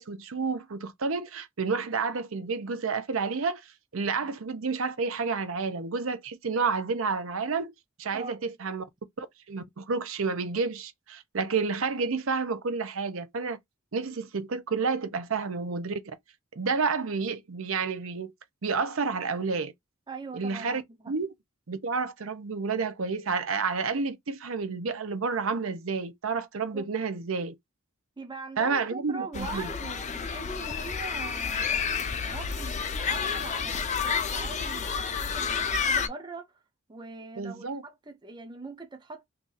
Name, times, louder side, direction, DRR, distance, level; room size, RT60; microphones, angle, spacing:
voice 1, 0.0-7.7 8.0-8.8 9.2-13.6 13.9-16.2 16.6-18.3 18.6-19.7 20.3-20.8 21.1-21.3 21.7-27.5 28.6-29.7 37.4-37.8, right 4 dB, 70° right, 0.7 m, -30 dB
voice 2, 20.1-21.1 26.7-26.9 28.2-36.6 36.9-39.3, right 3 dB, 20° right, 0.5 m, -42 dB
sound 1, 29.3-36.1, left 6 dB, 35° left, 0.5 m, -30 dB
2.8 x 2.5 x 3.8 m
head